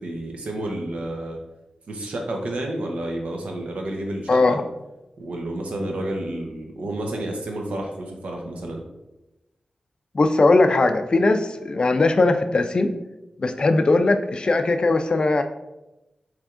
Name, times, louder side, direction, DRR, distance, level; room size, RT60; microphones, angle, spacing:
voice 1, 0.0-1.4 1.9-4.6 5.2-8.8, right 1 dB, 90° right, 1 dB, 0.8 m, -30 dB
voice 2, 4.3-4.6 10.1-12.9 13.4-15.4, left 2 dB, 45° left, 7 dB, 0.4 m, -19 dB
6.0 x 3.3 x 2.5 m, 0.99 s
wide cardioid pair, 110°, 2 cm